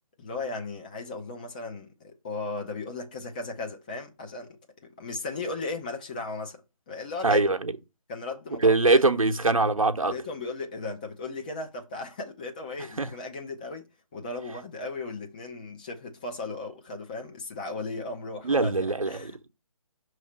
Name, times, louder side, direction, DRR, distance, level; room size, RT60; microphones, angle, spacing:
voice 1, 0.2-6.6 6.9-7.5 8.1-9.0 10.0-13.8 14.1-18.7 19.1-19.5, left 3 dB, 15° left, 0.5 m, -36 dB
voice 2, 7.2-7.7 8.6-10.1 13.0-13.1 18.4-19.5, right 3 dB, 70° right, 0.9 m, -23 dB
6.3 x 3.2 x 5.6 m
figure-of-eight pair, 145°, 18 cm